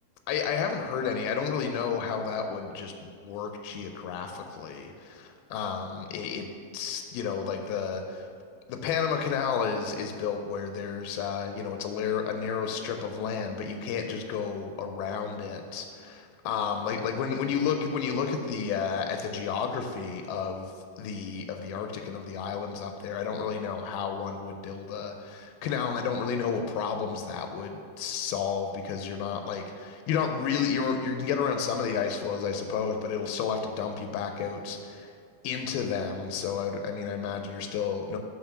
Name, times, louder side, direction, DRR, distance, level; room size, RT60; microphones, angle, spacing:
voice 1, 0.3-5.1 5.5-6.5 6.7-8.3 8.7-35.1 35.4-38.2, left 6 dB, 90° left, 5 dB, 2.4 m, -31 dB
5.7 x 5.6 x 5.7 m, 2.2 s
omnidirectional pair, 4.2 m